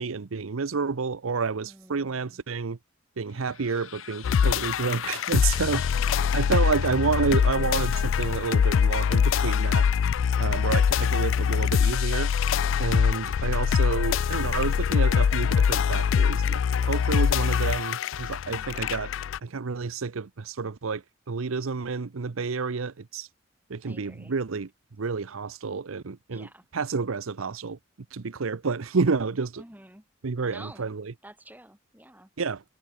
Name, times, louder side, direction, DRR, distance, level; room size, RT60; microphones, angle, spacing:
voice 1, 0.0-2.8 3.2-5.8 6.3-9.9 10.4-12.3 12.8-19.1 19.4-23.3 23.7-24.7 25.0-26.5 26.7-27.8 28.1-29.6 30.2-31.1 32.4-32.6, right 4 dB, 85° right, 0.7 m, -29 dB
voice 2, 1.6-2.4 5.7-6.3 6.6-6.7 11.1-11.4 18.5-18.8 23.8-24.3 26.3-26.6 29.6-30.0 30.4-30.9 31.2-32.3, right 1 dB, 10° right, 4.6 m, -49 dB
sound 1, 3.3-5.9, left 8 dB, 85° left, 2.2 m, -42 dB
sound 2, 3.9-18.1, left 3 dB, 15° left, 7.5 m, -62 dB
sound 3, 4.2-19.4, left 7 dB, 70° left, 0.3 m, -24 dB
head